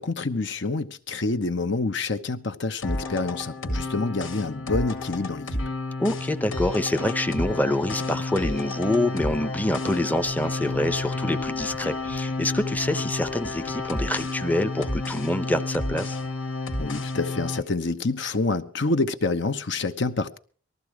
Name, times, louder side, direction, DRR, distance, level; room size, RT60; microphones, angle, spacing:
voice 1, 0.0-5.5 16.8-20.4, left 3 dB, 60° left, 1.0 m, -27 dB
sound 1, 2.8-17.6, left 2 dB, 75° left, 2.2 m, -30 dB
voice 2, 6.0-16.2, left 1 dB, 10° left, 0.7 m, -26 dB
19.5 x 14.0 x 4.8 m
head